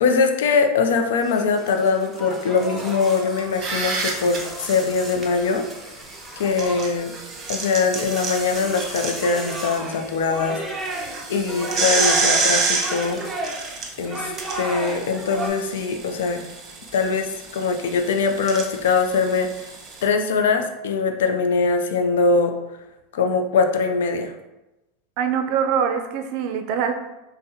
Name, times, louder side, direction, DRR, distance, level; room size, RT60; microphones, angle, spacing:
voice 1, 0.0-5.7 6.4-7.1 7.5-10.6 11.3-13.2 14.0-16.4 16.9-19.5 20.0-22.5 23.1-24.3, left 4 dB, 85° left, 6 dB, 0.4 m, -22 dB
sound 1, 1.2-15.5, right 1 dB, 10° right, 0.7 m, -33 dB
sound 2, 3.4-4.4 6.3-9.9 10.3-10.4 10.9-20.1, right 4 dB, 35° right, 1.0 m, -28 dB
voice 2, 25.2-26.9, right 7 dB, 60° right, 6 dB, 0.4 m, -23 dB
5.5 x 2.1 x 2.8 m, 0.98 s
supercardioid pair, 125°, 0 cm